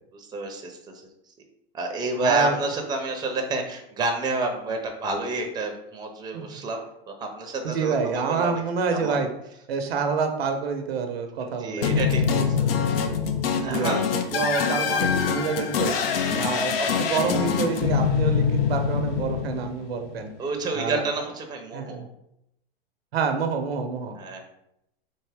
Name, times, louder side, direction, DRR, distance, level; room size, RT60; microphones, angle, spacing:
voice 1, 0.1-0.8 1.7-8.6 8.9-9.2 11.4-12.7 13.6-14.0 16.2-16.6 20.4-22.0 24.1-24.4, right 2 dB, 15° right, 4 dB, 0.6 m, -29 dB
voice 2, 2.2-2.6 6.3-6.4 7.6-9.3 9.7-12.4 13.6-14.0 14.3-15.9 16.3-20.3 20.7-21.0 21.7-22.1 23.1-24.2, right 5 dB, 80° right, 6 dB, 0.7 m, -27 dB
sound 1, 11.8-20.1, left 6 dB, 70° left, 0.6 m, -24 dB
3.5 x 2.7 x 3.4 m, 0.80 s
hypercardioid pair, 110°, 30 cm